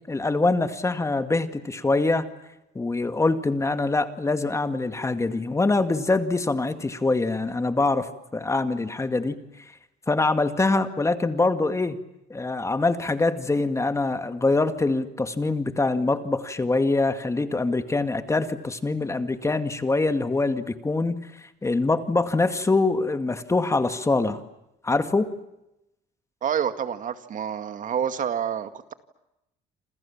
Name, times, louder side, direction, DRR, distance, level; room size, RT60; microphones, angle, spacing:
voice 1, 0.1-2.3 2.8-9.4 10.1-12.0 12.3-24.4 24.8-25.3, left 3 dB, 15° left, 9 dB, 2.0 m, -24 dB
voice 2, 26.4-28.9, right 8 dB, 50° right, 10 dB, 2.3 m, -28 dB
29.0 x 28.0 x 7.4 m, 0.88 s
cardioid pair, 110°, 17 cm